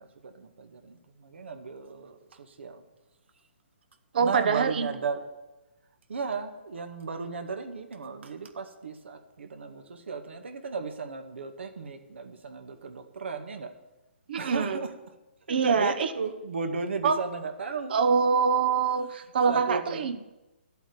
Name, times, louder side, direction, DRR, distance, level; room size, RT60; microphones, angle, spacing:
voice 1, 0.0-2.9 4.2-5.3 6.1-13.8 14.4-14.9 15.5-18.0 19.5-20.1, right 4 dB, 75° right, 6 dB, 2.0 m, -35 dB
voice 2, 4.1-4.9 14.3-14.8 15.5-16.1 17.0-17.2 17.9-20.2, right 5 dB, 55° right, 9 dB, 1.1 m, -24 dB
12.5 x 8.1 x 9.8 m, 1.0 s
hypercardioid pair, 155°, 6 cm